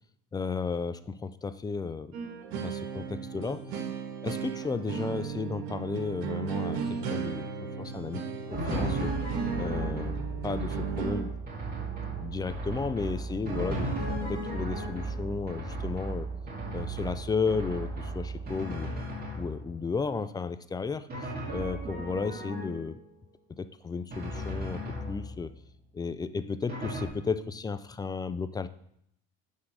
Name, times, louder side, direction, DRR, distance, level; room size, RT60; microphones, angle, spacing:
voice 1, 0.3-2.2 2.5-3.8 4.2-9.1 9.6-11.3 12.1-13.9 14.2-16.3 16.7-18.9 19.3-21.1 21.5-23.0 23.5-25.5 25.9-28.7, left 5 dB, 15° left, 12 dB, 0.3 m, -34 dB
sound 1, 2.1-11.2, right 6 dB, 90° right, 1.4 m, -35 dB
Drum, 8.5-19.9 21.1-23.1 24.1-25.6 26.7-27.1, right 2 dB, 30° right, 2.6 m, -35 dB
9.8 x 3.7 x 6.5 m, 0.72 s
supercardioid pair, 115°, 31 cm